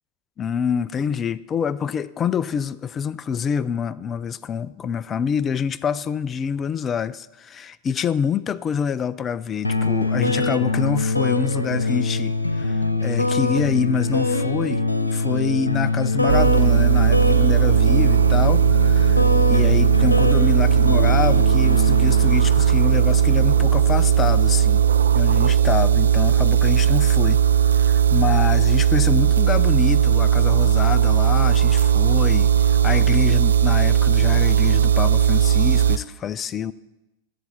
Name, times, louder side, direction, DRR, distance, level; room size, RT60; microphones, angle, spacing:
voice 1, 0.4-14.8 15.1-19.2 19.5-24.9 25.1-27.4 27.8-36.7, left 7 dB, 25° left, 0.4 m, -26 dB
sound 1, 9.6-24.7, left 3 dB, 80° left, 1.0 m, -23 dB
sound 2, 16.3-36.0, right 9 dB, 70° right, 0.5 m, -17 dB
25.0 x 8.4 x 4.2 m
figure-of-eight pair, 90°, 0 cm